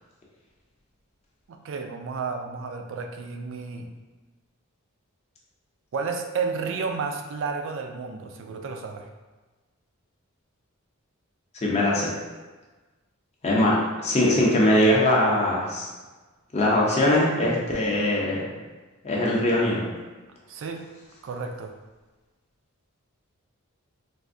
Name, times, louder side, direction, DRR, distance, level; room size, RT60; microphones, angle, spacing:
voice 1, 1.5-3.9 5.9-9.0 20.5-20.8 21.2-21.7, right 5 dB, 55° right, 4 dB, 0.3 m, -32 dB
voice 2, 11.6-12.1 13.4-13.7 14.0-15.9 16.5-18.4 19.0-19.8, left 1 dB, 30° left, -4 dB, 0.5 m, -21 dB
3.3 x 2.5 x 2.5 m, 1.3 s
head